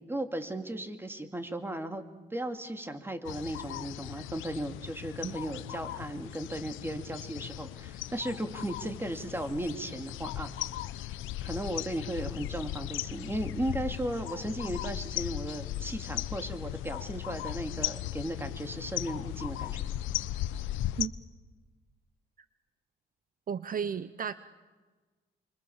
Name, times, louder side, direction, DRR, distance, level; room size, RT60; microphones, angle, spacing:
voice 1, 0.1-2.0 2.3-10.6 11.4-19.9, right 1 dB, 10° right, 6 dB, 2.8 m, -36 dB
sound 1, 3.2-21.1, left 13 dB, 90° left, 0.9 m, -37 dB
voice 2, 23.5-24.3, right 7 dB, 45° right, 13 dB, 0.9 m, -33 dB
28.5 x 24.5 x 7.3 m, 1.3 s
cardioid pair, 90°, 20 cm